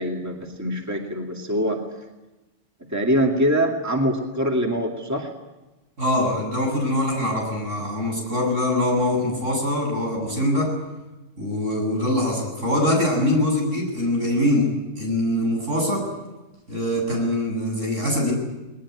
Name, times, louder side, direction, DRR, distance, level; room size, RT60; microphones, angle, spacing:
voice 1, 0.0-1.8 2.9-5.3, equal, 15° right, 1 dB, 2.4 m, -23 dB
voice 2, 6.0-10.7 11.4-14.7 15.0-16.1 16.7-18.3, left 1 dB, 75° right, 0 dB, 8.5 m, -23 dB
21.0 x 20.0 x 9.7 m, 1.1 s
omnidirectional pair, 1.3 m